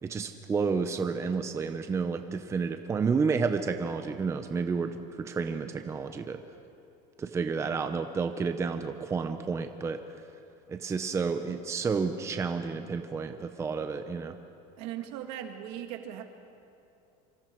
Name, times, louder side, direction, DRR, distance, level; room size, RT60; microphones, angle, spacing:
voice 1, 0.0-6.4 7.2-10.0 10.7-14.4, right 5 dB, 15° right, 7 dB, 0.7 m, -30 dB
voice 2, 14.8-16.2, right 11 dB, 70° right, 5 dB, 2.1 m, -38 dB
26.0 x 25.0 x 4.6 m, 2.7 s
cardioid pair, 150°, 17 cm